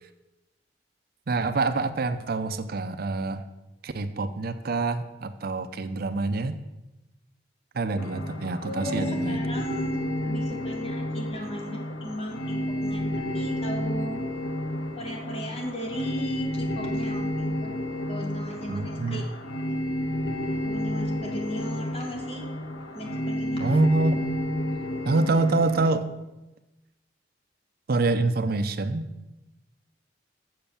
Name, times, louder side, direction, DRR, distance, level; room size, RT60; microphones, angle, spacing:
voice 1, 1.3-3.4 3.8-6.6 7.7-9.4 18.7-19.3 23.6-24.2 25.1-26.1 27.9-29.1, right 3 dB, 55° right, 11 dB, 0.6 m, -26 dB
sound 1, 8.0-25.9, left 1 dB, 65° left, 1.0 m, -31 dB
voice 2, 8.6-9.9 10.2-14.2 15.0-17.7 18.1-19.2 20.6-22.5 22.9-23.8, equal, 35° left, 1 dB, 1.9 m, -37 dB
7.6 x 6.8 x 7.0 m, 1.0 s
head